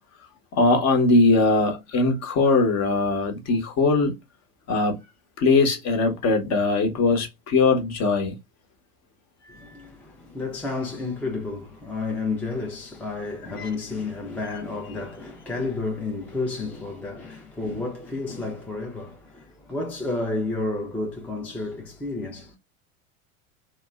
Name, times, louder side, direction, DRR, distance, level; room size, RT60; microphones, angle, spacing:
voice 1, 0.5-4.2 4.7-4.9 5.4-8.4 9.4-9.8 13.6-13.7, left 3 dB, 40° left, 0.9 m, -21 dB
voice 2, 9.5-22.6, left 3 dB, 5° left, 0.4 m, -31 dB
2.9 x 2.0 x 2.2 m
hypercardioid pair, 80°, 43 cm